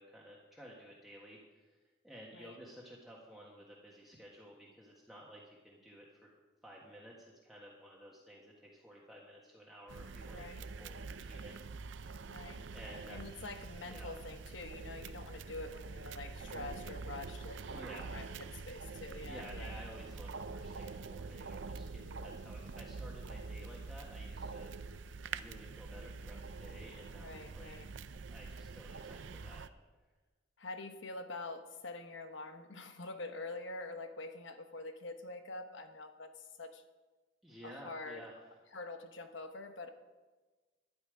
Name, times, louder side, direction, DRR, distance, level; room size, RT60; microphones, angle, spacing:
voice 1, 0.0-6.3 6.6-12.1 12.7-13.2 13.8-14.1 17.5-18.3 19.2-24.7 25.3-27.7 28.3-29.6 37.4-38.4, equal, ahead, -5 dB, 1.5 m, -54 dB
sound 1, 9.9-29.7, right 4 dB, 65° right, 0.5 m, -45 dB
voice 2, 10.3-10.6 12.3-12.6 13.1-19.8 22.0-22.3 27.2-27.9 30.6-36.8 37.6-38.3 38.7-39.9, left 2 dB, 70° left, 7 dB, 1.0 m, -46 dB
12.0 x 11.0 x 5.0 m, 1.3 s
head